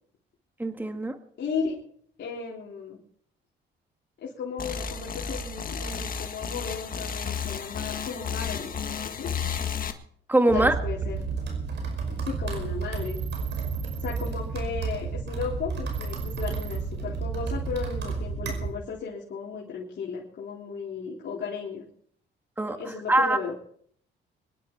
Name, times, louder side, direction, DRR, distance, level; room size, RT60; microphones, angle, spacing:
voice 1, 0.6-1.2 10.3-10.7 22.6-22.8 23.1-23.4, right 2 dB, 10° right, 6 dB, 1.7 m, -22 dB
voice 2, 1.4-1.7 2.2-3.0 4.2-9.3 10.5-11.2 12.2-13.2 14.0-21.8 22.8-23.5, left 5 dB, 60° left, -4 dB, 3.6 m, -35 dB
sound 1, 4.6-9.9, left 6 dB, 45° left, 1.8 m, -32 dB
sound 2, 10.5-18.7, right 5 dB, 60° right, 5.4 m, -31 dB
24.5 x 11.0 x 4.6 m, 0.62 s
cardioid pair, 90°, 20 cm